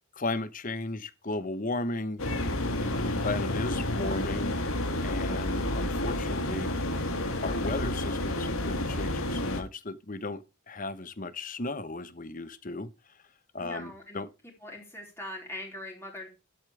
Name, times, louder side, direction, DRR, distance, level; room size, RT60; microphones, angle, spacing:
voice 1, 0.1-2.2 2.8-4.6 5.0-6.7 7.4-13.2 13.5-14.3, left 2 dB, 40° left, 1.1 m, -35 dB
sound 1, 2.2-9.6, left 1 dB, 85° left, 2.3 m, -30 dB
voice 2, 13.6-14.2 14.6-16.3, left 1 dB, 10° left, 4.1 m, -41 dB
11.5 x 8.4 x 3.4 m
head